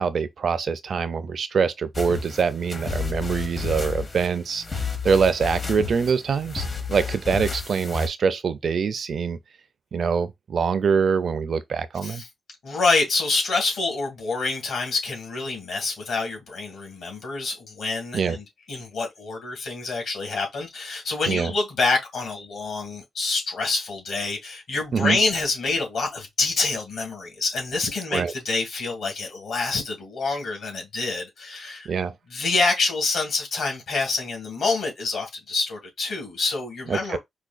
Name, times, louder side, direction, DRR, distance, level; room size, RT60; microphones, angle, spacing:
voice 1, 0.0-9.4 9.9-12.2 18.1-18.4 21.3-21.5 24.9-25.2 28.1-28.3 31.9-32.1 36.9-37.2, right 6 dB, 50° right, 0.4 m, -24 dB
sound 1, 1.9-8.1, left 5 dB, 30° left, 0.7 m, -31 dB
voice 2, 12.6-31.9 32.3-37.2, left 3 dB, 65° left, 2.0 m, -27 dB
4.8 x 2.2 x 2.5 m
wide cardioid pair, 150°, 0 cm